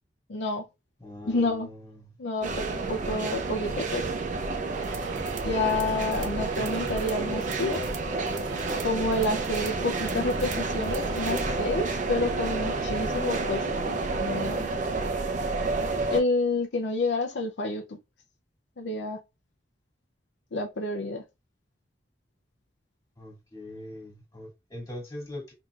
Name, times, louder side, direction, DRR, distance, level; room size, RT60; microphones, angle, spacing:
voice 1, 0.3-0.6 1.2-1.7 2.2-4.1 5.4-7.8 8.8-14.7 16.1-18.0 18.8-19.2 20.5-21.2, left 2 dB, 65° left, 0.6 m, -29 dB
voice 2, 1.0-2.1 6.6-6.7 23.2-25.5, left 1 dB, 20° left, 2.1 m, -41 dB
sound 1, 2.4-16.2, right 3 dB, 45° right, 0.6 m, -30 dB
sound 2, 4.7-11.6, right 6 dB, 80° right, 0.6 m, -42 dB
5.7 x 2.9 x 2.4 m
head